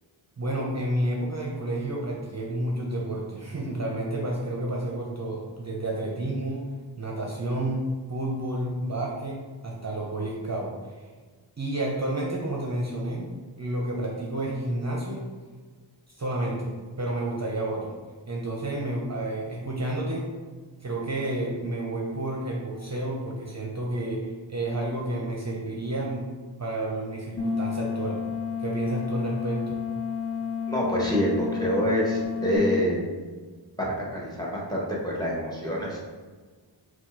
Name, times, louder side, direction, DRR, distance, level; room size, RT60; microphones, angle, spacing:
voice 1, 0.4-6.7 7.0-9.4 9.6-10.7 11.6-15.2 16.1-16.7 17.0-18.0 18.3-20.3 20.8-26.3 26.6-28.2 28.6-29.8, right 1 dB, 35° right, -2 dB, 0.6 m, -30 dB
sound 1, 27.4-32.6, left 7 dB, 30° left, 1.0 m, -31 dB
voice 2, 30.7-33.2 33.8-36.0, equal, 10° left, -3 dB, 1.0 m, -26 dB
4.2 x 2.3 x 4.3 m, 1.4 s
wide cardioid pair, 55°, 46 cm